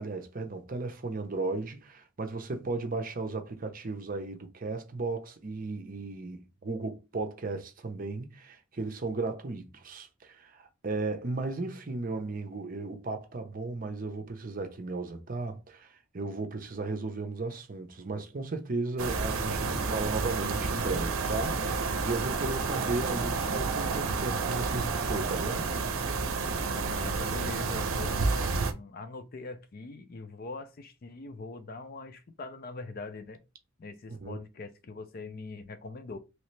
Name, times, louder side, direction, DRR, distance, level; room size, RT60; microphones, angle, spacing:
voice 1, 0.0-25.7 34.1-34.4, right 3 dB, 40° right, 0.6 m, -35 dB
sound 1, 19.0-28.7, right 4 dB, 80° right, 0.6 m, -30 dB
voice 2, 22.4-22.7 26.4-33.4 33.8-36.2, left 3 dB, 45° left, 0.4 m, -42 dB
3.1 x 2.8 x 3.2 m
head